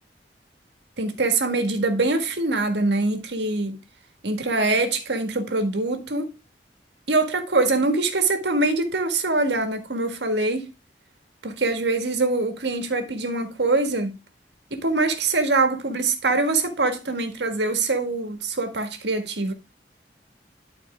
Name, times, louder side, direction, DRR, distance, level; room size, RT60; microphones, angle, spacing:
voice 1, 1.0-3.8 4.2-6.3 7.1-10.7 11.4-14.2 14.7-19.5, right 3 dB, 80° right, 1.6 m, -23 dB
11.5 x 4.4 x 3.5 m
head